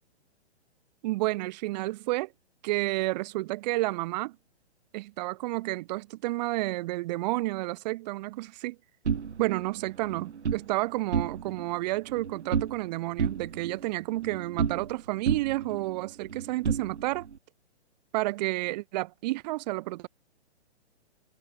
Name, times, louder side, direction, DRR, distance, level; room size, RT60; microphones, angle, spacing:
voice 1, 1.0-2.3 2.6-4.4 4.9-8.8 9.4-17.3 18.1-20.1, right 19 dB, 40° right, 1.9 m, -30 dB
sound 1, 9.0-10.7 11.0-11.7 11.9-12.9 13.2-15.0 15.3-17.4, right 6 dB, 85° right, 2.5 m, -32 dB
hypercardioid pair, 135°, 34 cm